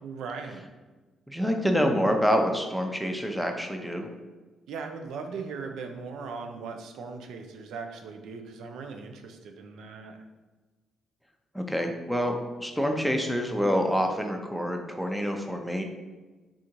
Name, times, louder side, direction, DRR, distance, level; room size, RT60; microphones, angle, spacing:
voice 1, 0.0-0.6 4.7-10.2, right 5 dB, 80° right, 5 dB, 0.5 m, -39 dB
voice 2, 1.3-4.1 11.5-15.8, equal, ahead, 3 dB, 0.6 m, -27 dB
3.7 x 2.6 x 4.4 m, 1.2 s
cardioid pair, 90°, 0 cm